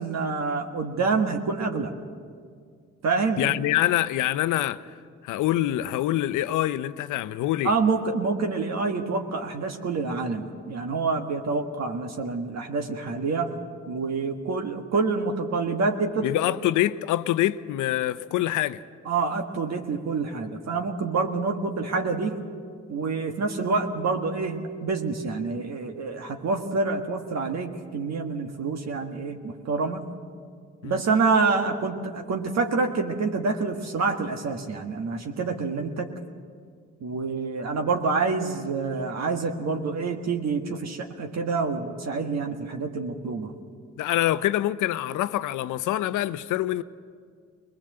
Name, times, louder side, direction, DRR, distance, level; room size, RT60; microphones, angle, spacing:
voice 1, 0.0-1.9 3.0-3.6 7.6-13.5 13.9-16.3 19.0-22.4 22.9-30.0 30.8-36.1 37.0-43.5, right 4 dB, 60° right, 1.7 m, -27 dB
voice 2, 3.4-4.9 5.2-7.7 16.2-18.8 30.8-31.0 44.0-46.8, left 14 dB, 85° left, 0.7 m, -25 dB
21.5 x 20.5 x 7.8 m
cardioid pair, 90°, 30 cm